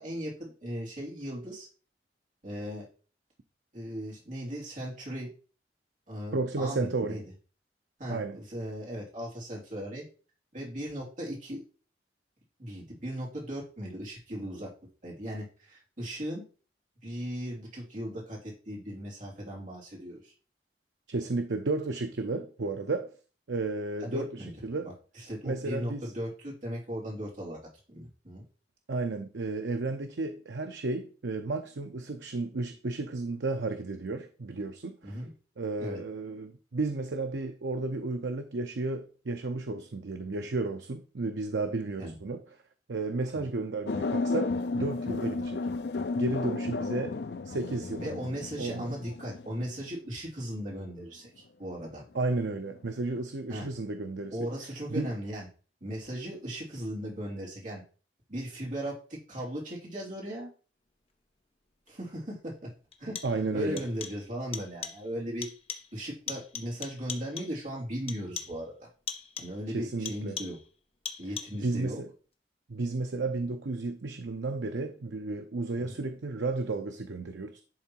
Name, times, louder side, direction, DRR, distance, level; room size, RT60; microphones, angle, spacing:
voice 1, 0.0-1.7 2.4-2.9 3.7-5.3 6.1-7.2 8.0-10.0 10.5-11.6 12.6-14.7 15.0-16.4 17.0-20.3 24.0-24.5 24.8-27.6 27.9-28.4 35.0-35.3 35.8-36.0 42.0-42.1 43.3-43.5 48.0-52.0 53.5-53.7 54.3-55.5 55.8-57.8 58.3-60.5 61.9-62.7 63.0-63.2 63.5-65.5 65.9-68.9 69.4-70.6 71.2-72.0 75.8-75.9, equal, 45° right, 3.1 m, -37 dB
voice 2, 6.3-7.2 8.1-8.4 21.1-23.1 23.5-24.9 25.4-26.1 28.9-35.2 35.6-42.6 42.9-45.6 46.1-47.2 47.4-48.0 48.6-48.9 52.1-54.5 54.9-55.1 63.2-63.8 69.7-70.4 71.5-72.1 72.7-77.6, right 3 dB, 85° right, 0.7 m, -33 dB
sound 1, 43.9-49.9 52.7-53.2, left 3 dB, 65° left, 0.5 m, -33 dB
sound 2, 61.9-62.0 62.9-63.5 63.8-64.3 64.5-65.1 65.4-66.0 66.3-67.6 68.1-68.7 69.1-69.6 70.1-70.7 71.1-71.7, left 7 dB, 35° left, 0.8 m, -40 dB
10.5 x 3.8 x 4.5 m
head